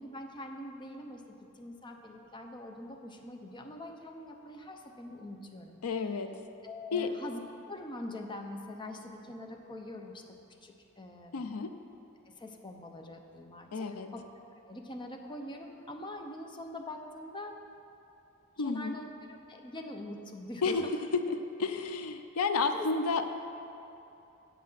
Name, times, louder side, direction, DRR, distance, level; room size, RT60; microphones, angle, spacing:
voice 1, 0.0-5.8 6.6-7.4 7.7-11.5 12.3-14.2 14.5-17.6 18.6-20.9 22.7-22.9, left 1 dB, 20° left, 3 dB, 0.7 m, -44 dB
voice 2, 5.8-6.4 6.9-7.1 11.3-11.7 13.7-14.1 18.6-18.9 20.6-20.8 21.1-23.3, left 4 dB, 90° left, 8 dB, 0.5 m, -31 dB
8.4 x 7.6 x 5.6 m, 2.8 s
head